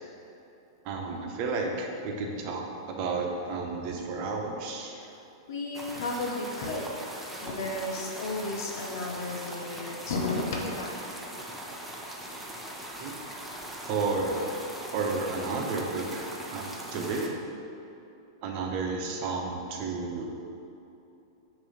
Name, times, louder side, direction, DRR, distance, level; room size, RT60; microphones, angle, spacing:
voice 1, 0.8-5.0 13.0-13.1 13.9-14.5 14.9-17.3 18.4-20.3, right 3 dB, 45° right, 1 dB, 1.0 m, -32 dB
voice 2, 5.5-11.2, left 2 dB, 70° left, 0 dB, 1.0 m, -34 dB
sound 1, 5.7-17.3, right 1 dB, 5° right, 0.8 m, -40 dB
6.9 x 3.0 x 5.6 m, 2.8 s
hypercardioid pair, 120°, 2 cm